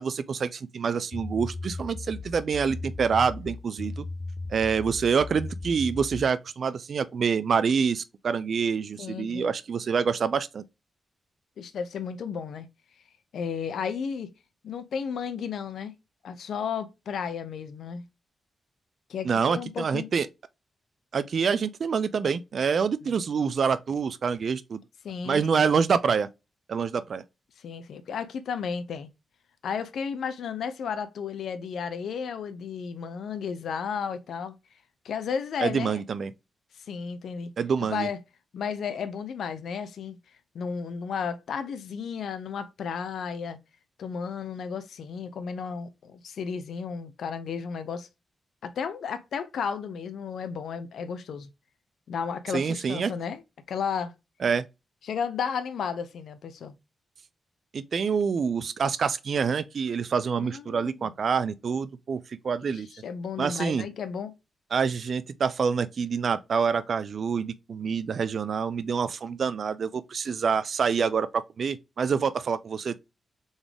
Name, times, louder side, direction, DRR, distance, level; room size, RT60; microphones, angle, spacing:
voice 1, 0.0-4.0 4.5-10.6 19.2-20.3 21.1-24.8 25.2-26.3 26.7-27.2 35.6-36.3 37.6-38.1 52.5-53.1 54.4-54.6 57.7-62.9 63.4-63.9 64.7-73.0, right 6 dB, 65° right, 0.4 m, -26 dB
sound 1, 1.1-6.3, left 3 dB, 40° left, 0.4 m, -37 dB
voice 2, 9.0-9.5 11.6-12.7 13.3-14.3 14.6-15.9 16.2-18.0 19.1-20.1 25.0-25.6 27.6-29.1 29.6-34.6 35.0-36.0 36.8-37.5 37.8-38.2 38.5-40.2 40.5-43.6 44.0-48.1 48.6-51.5 52.1-53.4 53.7-54.1 55.0-56.8 60.4-61.1 62.7-64.3, left 6 dB, 85° left, 0.7 m, -33 dB
4.0 x 3.5 x 3.4 m
cardioid pair, 80°, 0 cm